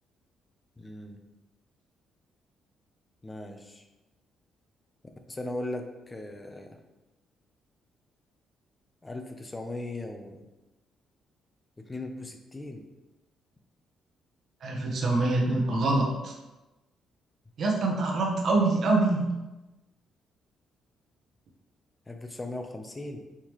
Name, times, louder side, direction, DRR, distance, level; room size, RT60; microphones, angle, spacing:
voice 1, 0.8-1.2 3.2-3.8 5.3-6.8 9.0-10.4 11.9-12.9 22.1-23.2, left 2 dB, 20° left, 4 dB, 0.6 m, -38 dB
voice 2, 14.6-16.3 17.6-19.2, right 2 dB, 60° right, 0 dB, 0.9 m, -25 dB
4.5 x 3.6 x 3.0 m, 1.1 s
cardioid pair, 90°, 0 cm